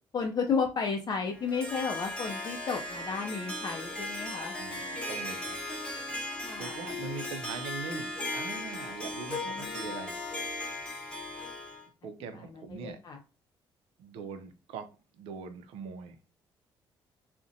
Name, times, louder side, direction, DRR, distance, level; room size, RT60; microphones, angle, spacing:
voice 1, 0.1-4.5 6.4-6.8 9.5-9.9 12.3-13.2, left 5 dB, 40° left, 2 dB, 0.4 m, -33 dB
Harp, 1.3-11.8, left 2 dB, 10° left, 0.8 m, -37 dB
voice 2, 4.5-5.6 6.6-10.2 12.0-13.0 14.0-14.9 15.1-16.2, right 5 dB, 80° right, 7 dB, 0.4 m, -42 dB
2.5 x 2.1 x 2.5 m, 0.33 s
supercardioid pair, 65°, 10 cm